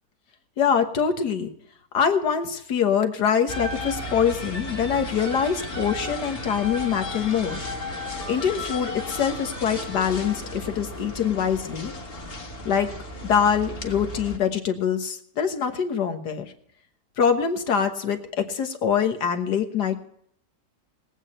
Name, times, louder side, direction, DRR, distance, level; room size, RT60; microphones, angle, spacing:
voice 1, 0.6-1.5 1.9-7.6 8.3-11.9 12.6-12.9 13.2-16.5 17.2-20.0, left 7 dB, 85° left, 6 dB, 1.9 m, -24 dB
sound 1, 3.5-14.4, left 1 dB, 35° left, 1.6 m, -34 dB
21.0 x 8.5 x 4.3 m, 0.66 s
omnidirectional pair, 1.7 m